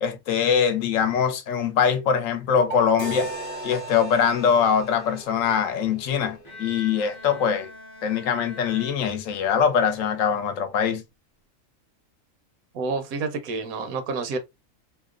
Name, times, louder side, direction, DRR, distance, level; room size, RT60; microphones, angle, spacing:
voice 1, 0.0-3.3 3.6-7.7 8.0-11.0, left 7 dB, 75° left, 0.9 m, -23 dB
sound 1, 2.7-5.5, right 9 dB, 65° right, 0.5 m, -38 dB
sound 2, 3.0-7.1, left 2 dB, 50° left, 1.0 m, -40 dB
Bowed string instrument, 6.4-9.8, left 2 dB, 25° left, 0.5 m, -43 dB
voice 2, 12.7-14.4, right 4 dB, 85° right, 1.1 m, -29 dB
2.8 x 2.0 x 2.3 m
omnidirectional pair, 1.4 m